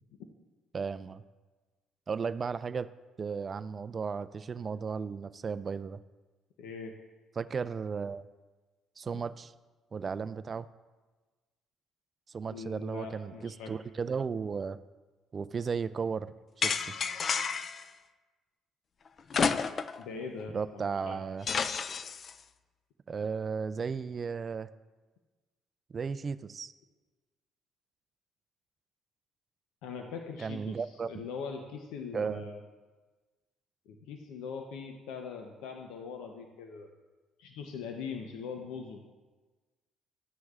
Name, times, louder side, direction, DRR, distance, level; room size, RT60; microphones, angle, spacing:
voice 1, 0.7-1.2 2.1-2.9 3.2-6.0 7.4-8.3 9.0-9.5 9.9-10.7 12.3-14.8 15.3-16.3 16.6-17.0 20.5-21.5 23.1-24.7 25.9-26.7 30.4-31.1 32.1-32.5, right 5 dB, 40° right, 13 dB, 0.3 m, -35 dB
voice 2, 6.6-6.9 12.5-13.7 20.0-21.2 29.8-30.8 31.0-32.6 33.9-36.9 37.4-39.0, left 5 dB, 85° left, 3 dB, 0.7 m, -41 dB
sound 1, 16.6-17.8 19.3-20.0 20.4-20.5 21.5-22.3, left 5 dB, 45° left, 0.4 m, -30 dB
13.0 x 9.5 x 2.5 m, 1.3 s
cardioid pair, 85°, 0 cm